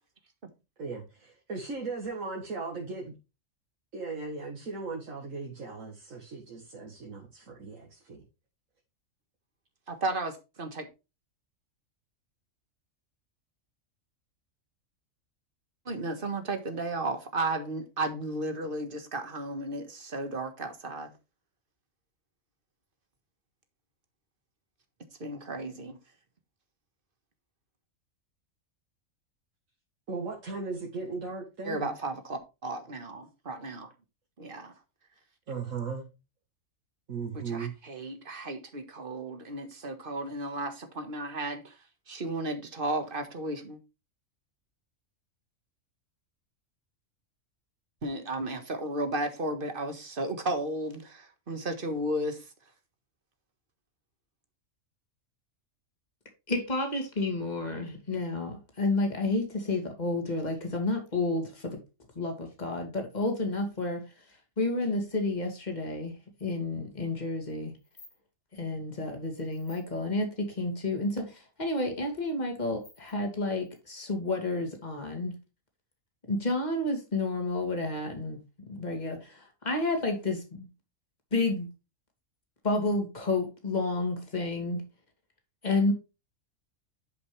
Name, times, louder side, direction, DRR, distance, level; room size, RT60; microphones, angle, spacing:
voice 1, 0.8-3.1 3.9-8.2 30.1-31.9 35.5-36.1 37.1-37.7, right 4 dB, 75° right, 2.1 m, -37 dB
voice 2, 9.9-10.9 15.8-21.1 25.2-26.0 31.6-33.9 34.4-34.7 37.3-41.7 42.1-43.8 48.0-52.4, right 2 dB, 40° right, 1.6 m, -34 dB
voice 3, 56.5-61.8 62.2-64.0 64.6-66.1 66.4-67.7 68.5-75.4 76.3-80.7 81.3-81.7 82.6-84.8 85.6-85.9, left 2 dB, 30° left, 2.4 m, -30 dB
sound 1, 67.5-67.6 67.8-68.2 69.2-69.8 71.0-71.1 71.3-71.4 72.2-72.3 72.6-74.2, left 2 dB, 90° left, 4.4 m, -55 dB
11.0 x 5.2 x 3.3 m
omnidirectional pair, 1.4 m